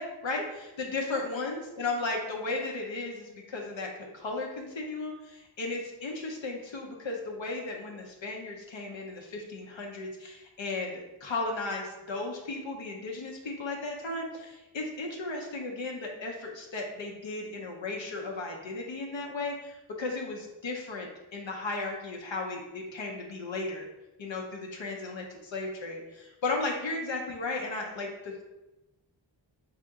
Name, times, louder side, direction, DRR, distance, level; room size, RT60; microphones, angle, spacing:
voice 1, 0.0-23.9 24.2-28.4, left 3 dB, 75° left, 0 dB, 0.8 m, -35 dB
3.3 x 2.9 x 3.6 m, 0.99 s
cardioid pair, 55°, 45 cm